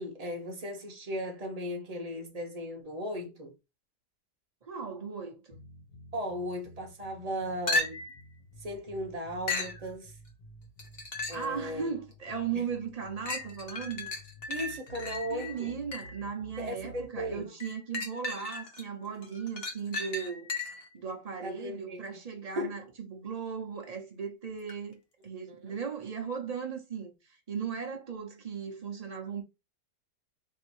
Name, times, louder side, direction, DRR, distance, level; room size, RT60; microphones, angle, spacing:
voice 1, 0.0-3.5 6.1-8.0 8.6-10.2 11.3-11.9 12.5-12.6 14.5-15.8 16.6-17.5 21.4-22.0 22.5-22.8 25.5-25.7, equal, 30° right, 0.8 m, -37 dB
voice 2, 4.6-5.6 11.3-14.1 15.3-20.5 20.9-27.1 27.5-29.4, right 6 dB, 60° right, 0.4 m, -37 dB
sound 1, 5.5-17.5, right 1 dB, 80° left, 1.9 m, -52 dB
sound 2, 7.7-8.2 9.5-9.8 10.8-11.5 12.1-12.2 13.3-16.2 17.6-18.8 19.2-20.9 24.7-24.8, left 3 dB, 40° left, 0.9 m, -35 dB
3.6 x 2.7 x 4.4 m
omnidirectional pair, 1.9 m